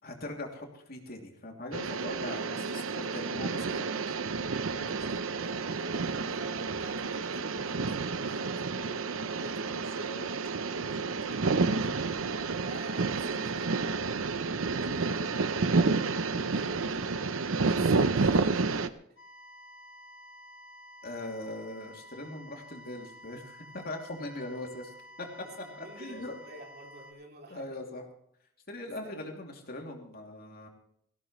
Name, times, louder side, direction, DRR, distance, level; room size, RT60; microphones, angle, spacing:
voice 1, 0.0-4.2 4.7-5.1 10.0-10.3 10.8-11.4 14.4-14.6 21.0-25.3 26.0-26.4 27.5-28.1 28.7-30.7, left 2 dB, 50° left, 2 dB, 2.9 m, -41 dB
sound 1, 1.7-18.9, right 4 dB, 80° right, 0.8 m, -30 dB
voice 2, 4.6-5.0 5.4-10.0 11.9-12.2 12.5-13.8 14.8-15.4 16.5-17.0 17.6-19.2 25.4-27.8 29.0-29.1, right 2 dB, 50° right, 1 dB, 3.0 m, -50 dB
sound 2, 19.2-27.1, equal, 65° left, 3.1 m, -51 dB
17.5 x 17.0 x 3.2 m, 0.67 s
head